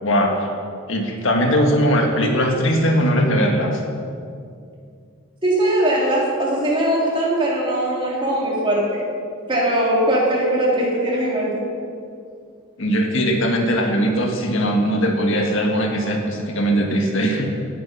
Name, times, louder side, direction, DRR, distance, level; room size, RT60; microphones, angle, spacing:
voice 1, 0.0-0.5 0.9-3.8 12.8-17.5, equal, 60° left, 2 dB, 1.7 m, -20 dB
voice 2, 5.4-9.0 9.5-11.6, right 1 dB, 25° right, -4 dB, 3.4 m, -20 dB
17.0 x 9.4 x 5.9 m, 2.4 s
head